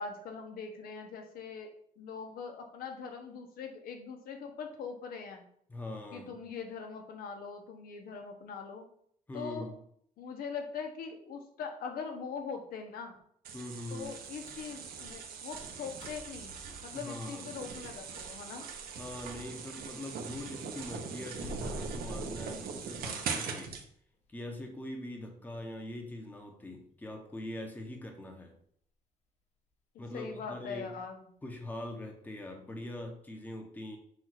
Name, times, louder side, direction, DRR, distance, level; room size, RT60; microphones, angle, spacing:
voice 1, 0.0-5.4 6.1-8.8 9.3-9.7 10.2-13.2 13.9-16.6 16.8-18.6 30.1-31.3, left 5 dB, 85° left, 4 dB, 1.2 m, -42 dB
voice 2, 5.7-6.4 9.3-9.8 13.5-14.2 16.9-17.5 19.0-23.8 24.3-28.6 30.0-30.9 31.4-34.0, left 1 dB, 10° left, 2 dB, 1.0 m, -42 dB
sound 1, 13.4-23.8, right 6 dB, 85° right, 1.1 m, -41 dB
sound 2, 14.0-20.0 20.3-23.2 23.5-23.6 24.1-24.2 24.8-25.1 25.4-25.5 26.1-26.2, left 1 dB, 45° left, 1.6 m, -50 dB
7.7 x 2.6 x 5.9 m, 0.64 s
cardioid pair, 165°, 15 cm